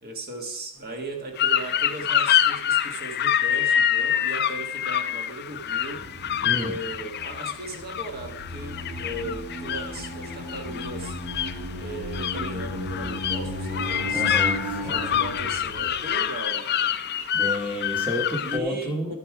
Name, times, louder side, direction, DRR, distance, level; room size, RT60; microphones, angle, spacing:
voice 1, 0.0-6.0 6.5-11.2 11.8-14.4 14.8-16.9 18.4-19.2, right 1 dB, 45° right, 3 dB, 1.4 m, -37 dB
sound 1, 0.8-1.4 1.9-2.0 5.4-16.3, equal, 85° right, 2.1 m, -35 dB
sound 2, 1.4-18.6, left 9 dB, 45° left, 0.5 m, -26 dB
voice 2, 6.4-6.8 14.1-15.1 17.3-19.1, equal, 5° right, -1 dB, 1.1 m, -31 dB
12.0 x 8.2 x 4.7 m, 0.75 s
head